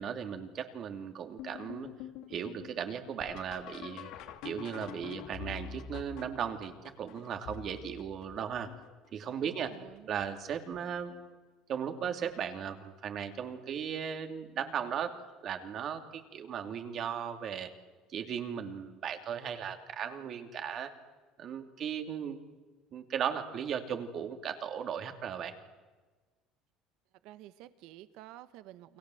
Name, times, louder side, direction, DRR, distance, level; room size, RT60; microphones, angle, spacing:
voice 1, 0.0-1.9 2.3-4.1 4.4-8.7 9.1-9.7 10.1-11.1 11.7-15.1 15.4-17.7 18.1-20.9 21.4-22.4 22.9-25.6, right 8 dB, 45° right, 6 dB, 2.8 m, -37 dB
sound 1, 1.4-9.1 9.7-10.3 10.7-11.4 12.6-12.7 13.4-13.8 15.9-16.0 18.4-18.5, left 9 dB, 70° left, 2.6 m, -47 dB
voice 2, 9.4-10.2 27.2-29.0, right 14 dB, 70° right, 13 dB, 1.3 m, -51 dB
29.5 x 23.0 x 7.9 m, 1.3 s
cardioid pair, 140°, 0 cm